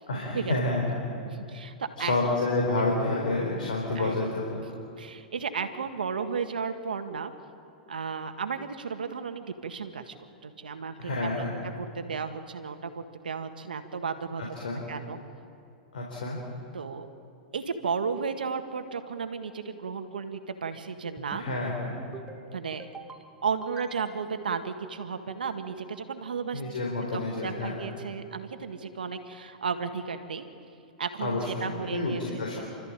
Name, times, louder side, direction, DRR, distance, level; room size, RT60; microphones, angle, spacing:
voice 1, 0.1-1.0 2.0-4.4 11.0-11.6 14.6-14.8 15.9-16.4 21.3-22.0 26.5-27.8 31.2-32.6, left 2 dB, 80° left, -2 dB, 4.3 m, -29 dB
voice 2, 1.2-2.1 3.9-4.2 5.0-7.3 7.9-10.1 10.4-11.4 11.8-14.4 14.9-15.2 16.7-17.1 17.5-21.4 22.5-22.9 23.4-26.6 27.1-30.4 31.0-32.6, right 5 dB, 85° right, 8 dB, 1.8 m, -34 dB
sound 1, 21.2-21.6 22.0-22.4 22.8-23.2 23.6-24.4, right 3 dB, 15° right, 2.2 m, -45 dB
29.0 x 13.5 x 9.0 m, 2.7 s
hypercardioid pair, 115°, 5 cm